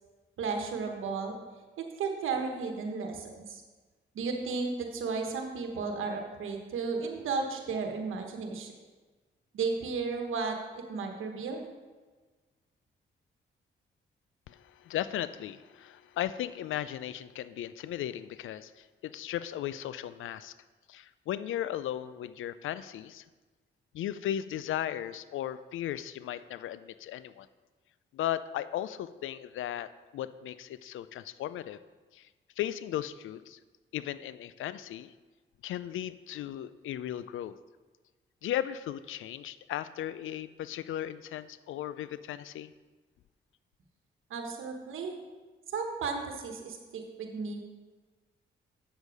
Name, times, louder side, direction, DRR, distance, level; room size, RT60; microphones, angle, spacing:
voice 1, 0.4-1.3 2.0-3.6 4.1-8.7 9.5-11.7 44.3-45.1 45.7-47.6, right 4 dB, 85° right, 3 dB, 1.2 m, -34 dB
voice 2, 14.5-20.5 20.9-23.2 23.9-27.5 28.1-31.8 32.1-32.3 32.6-33.6 33.9-35.1 35.6-37.5 38.4-42.7, left 11 dB, 80° left, 15 dB, 0.4 m, -36 dB
8.1 x 6.7 x 4.8 m, 1.3 s
supercardioid pair, 55°, 20 cm